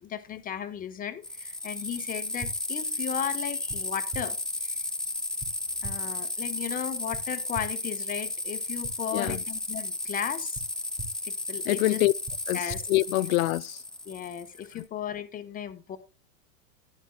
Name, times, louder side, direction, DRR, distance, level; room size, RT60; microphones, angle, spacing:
voice 1, 0.0-4.4 4.6-4.8 5.8-10.6 11.2-12.0 12.5-12.8 14.1-16.0, left 9 dB, 20° left, 1.1 m, -35 dB
sound 1, 1.2-14.8, left 2 dB, ahead, 0.4 m, -34 dB
sound 2, 2.4-2.5 3.7-3.8 4.1-4.2 5.4-5.5 5.8-5.9 7.1-7.2 7.5-7.6 8.8-8.9 9.2-9.4 10.5-10.6 11.0-11.1 12.2-12.4 12.7-12.8, right 4 dB, 25° right, 3.1 m, -38 dB
voice 2, 9.1-9.4 11.7-12.1 12.5-13.8, left 19 dB, 90° left, 0.6 m, -25 dB
11.5 x 11.0 x 2.3 m
supercardioid pair, 150°, 39 cm